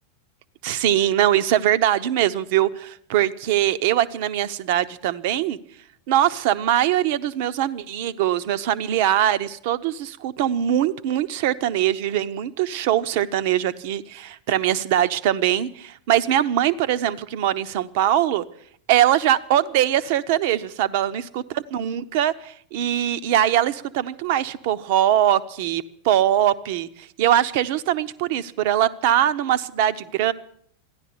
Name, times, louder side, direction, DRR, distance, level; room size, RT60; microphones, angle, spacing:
voice 1, 0.6-5.6 6.1-18.4 18.9-26.9 27.2-30.3, right 11 dB, 50° right, 14 dB, 0.7 m, -22 dB
14.0 x 11.0 x 8.5 m, 0.65 s
figure-of-eight pair, 90°, 0 cm